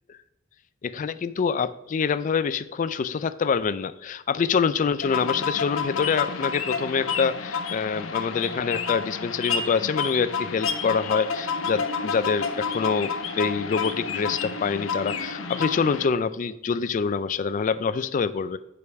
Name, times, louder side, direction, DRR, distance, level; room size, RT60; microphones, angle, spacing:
voice 1, 0.8-18.6, left 5 dB, 40° left, 13 dB, 0.3 m, -26 dB
sound 1, 5.0-16.1, left 5 dB, 85° left, 0.7 m, -30 dB
5.2 x 4.8 x 5.7 m, 0.94 s
head